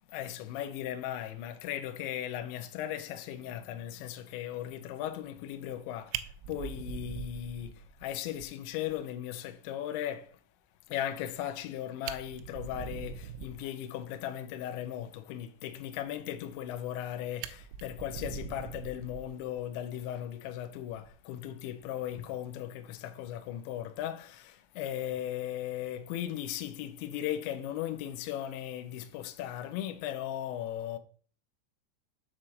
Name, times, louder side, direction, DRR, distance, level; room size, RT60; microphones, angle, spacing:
voice 1, 0.1-10.4 10.9-31.0, left 11 dB, 80° left, 2.7 m, -37 dB
Fire, 5.7-5.8 6.1-8.1 8.4-8.5 8.9-9.0 9.3-9.4 11.6-11.7 12.0-13.7 16.5-17.0 17.4-19.6 20.9-21.1, right 8 dB, 85° right, 3.2 m, -41 dB
8.0 x 4.4 x 6.3 m
omnidirectional pair, 5.9 m